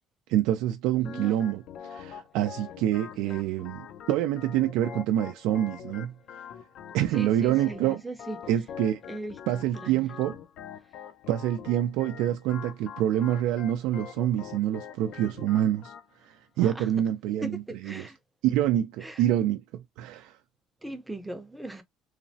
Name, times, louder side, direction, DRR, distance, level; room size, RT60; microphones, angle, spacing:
voice 1, 0.3-6.5 6.9-8.0 8.5-9.0 9.5-10.4 11.3-15.9 16.2-18.1 18.4-20.4, right 12 dB, 85° right, 0.3 m, -27 dB
Organ, 1.0-16.1, left 8 dB, 65° left, 0.4 m, -44 dB
voice 2, 1.0-1.4 3.2-3.4 7.1-8.4 9.1-10.1 16.6-16.9 17.4-18.2 19.0-19.2 20.8-21.8, right 2 dB, 5° right, 0.5 m, -39 dB
3.1 x 2.0 x 2.6 m
cardioid pair, 130°, 0 cm